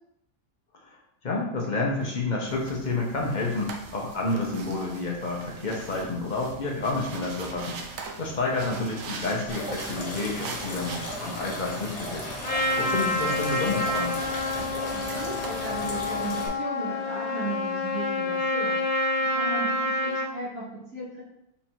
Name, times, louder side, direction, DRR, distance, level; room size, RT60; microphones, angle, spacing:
voice 1, 1.2-12.2 12.5-14.2, left 3 dB, 40° left, -1 dB, 0.8 m, -30 dB
sound 1, 2.5-16.0, right 4 dB, 70° right, 1.0 m, -42 dB
voice 2, 8.5-8.9 14.9-21.2, right 2 dB, 85° right, -8 dB, 1.7 m, -36 dB
sound 2, 9.5-16.5, left 1 dB, 60° left, 1.4 m, -35 dB
Trumpet, 12.4-20.3, left 2 dB, 75° left, 1.3 m, -28 dB
4.1 x 2.6 x 4.5 m, 0.79 s
omnidirectional pair, 1.5 m